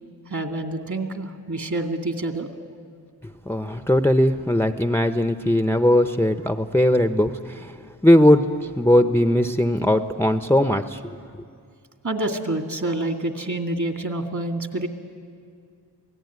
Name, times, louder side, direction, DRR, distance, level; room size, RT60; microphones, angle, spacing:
voice 1, 0.3-2.5 12.0-14.9, right 2 dB, 45° right, 5 dB, 2.4 m, -27 dB
voice 2, 3.2-7.8 8.0-11.0, left 1 dB, 5° left, 8 dB, 0.8 m, -19 dB
27.0 x 18.0 x 9.5 m, 2.3 s
cardioid pair, 60°, 39 cm